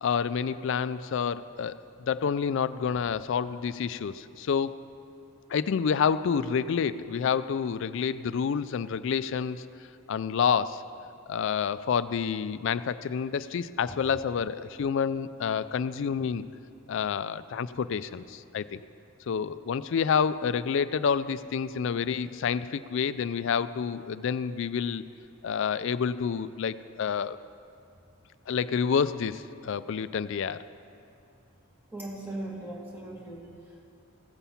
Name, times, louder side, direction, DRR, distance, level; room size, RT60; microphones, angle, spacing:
voice 1, 0.0-4.8 5.5-9.6 10.1-10.8 11.3-16.4 16.9-18.8 19.3-25.0 25.4-27.4 28.5-30.6, left 6 dB, 55° left, 14 dB, 0.3 m, -28 dB
voice 2, 31.9-34.0, right 1 dB, 10° right, -2 dB, 1.5 m, -39 dB
15.5 x 6.9 x 5.7 m, 2.6 s
head